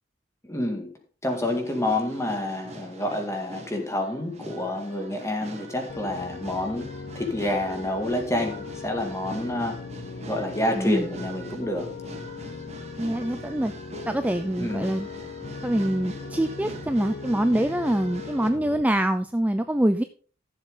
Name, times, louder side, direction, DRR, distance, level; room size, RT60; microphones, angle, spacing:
voice 1, 0.4-0.9 1.2-9.8 10.3-11.9 14.6-14.9, left 1 dB, 15° left, 3 dB, 2.2 m, -28 dB
sound 1, 1.3-18.5, right 1 dB, 35° right, 1.7 m, -43 dB
Piano, 5.9-18.8, left 4 dB, 50° left, 0.6 m, -39 dB
voice 2, 10.7-11.1 13.0-13.7 14.1-15.1 15.6-20.0, right 1 dB, 10° right, 9 dB, 0.4 m, -25 dB
14.5 x 7.2 x 3.8 m, 0.40 s
head